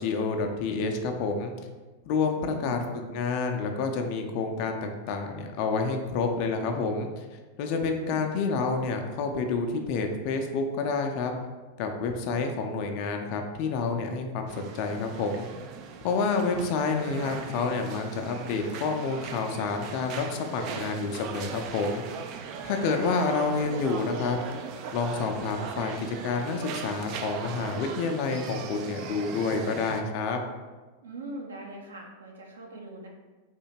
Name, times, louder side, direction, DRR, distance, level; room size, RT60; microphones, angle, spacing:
voice 1, 0.0-1.5 2.1-7.2 7.6-11.3 11.8-15.4 16.0-22.0 22.6-24.4 24.9-30.4, left 4 dB, 45° left, 4 dB, 0.5 m, -29 dB
voice 2, 2.4-3.1 7.7-8.3 22.7-23.0 31.0-33.1, right 2 dB, 70° right, 0 dB, 0.8 m, -42 dB
sound 1, 14.5-30.0, right 6 dB, 40° right, 0.3 m, -39 dB
3.6 x 2.8 x 4.4 m, 1.3 s
figure-of-eight pair, 90°, 0 cm